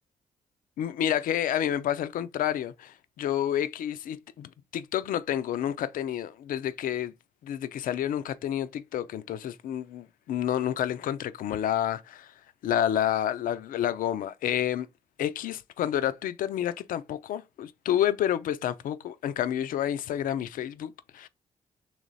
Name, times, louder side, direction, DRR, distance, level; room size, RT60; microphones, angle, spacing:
voice 1, 0.8-7.1 7.4-12.3 12.6-14.9 15.2-21.3, left 11 dB, 75° left, 0.4 m, -29 dB
3.2 x 3.0 x 4.0 m
cardioid pair, 65°, 14 cm